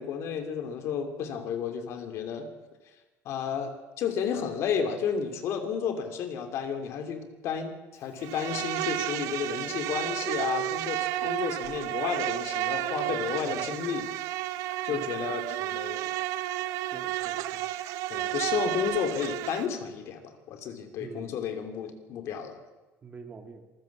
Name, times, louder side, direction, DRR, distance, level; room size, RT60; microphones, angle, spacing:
voice 1, 0.0-2.5 3.2-14.1 14.8-16.1 18.1-22.6, left 7 dB, 60° left, 7 dB, 3.0 m, -32 dB
Insect, 8.2-19.7, right 14 dB, 85° right, 1.0 m, -32 dB
voice 2, 16.9-17.7 21.0-21.4 23.0-23.7, right 4 dB, 25° right, 6 dB, 2.1 m, -45 dB
26.5 x 15.0 x 7.4 m, 1.2 s
cardioid pair, 155°, 5 cm